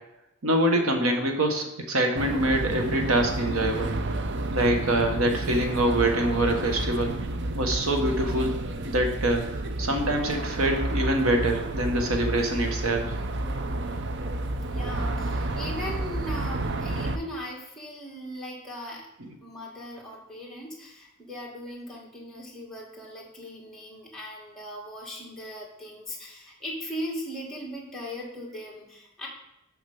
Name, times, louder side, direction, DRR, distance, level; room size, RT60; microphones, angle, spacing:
voice 1, 0.4-3.9 4.5-7.1 7.5-8.5 8.8-13.2 19.2-19.3, right 1 dB, 80° right, 4 dB, 1.2 m, -25 dB
sound 1, 2.2-17.2, right 2 dB, 55° right, 0.6 m, -30 dB
voice 2, 14.7-19.1 19.4-29.3, equal, ahead, -3 dB, 2.0 m, -38 dB
6.5 x 4.9 x 7.0 m, 0.87 s
head